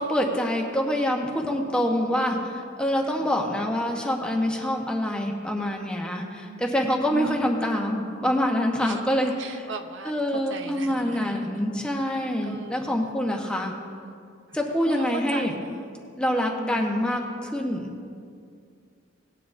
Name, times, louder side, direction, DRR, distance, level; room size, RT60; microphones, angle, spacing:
voice 1, 0.0-9.7 10.0-13.7 14.5-15.5 16.2-18.1, equal, 5° left, 0 dB, 1.0 m, -26 dB
voice 2, 6.3-6.7 7.1-7.6 8.8-10.1 10.5-11.4 12.4-13.1 13.3-13.5 14.8-15.1 15.3-15.9 16.6-16.9, right 3 dB, 65° right, 6 dB, 0.7 m, -38 dB
19.0 x 9.5 x 2.6 m, 2.3 s
head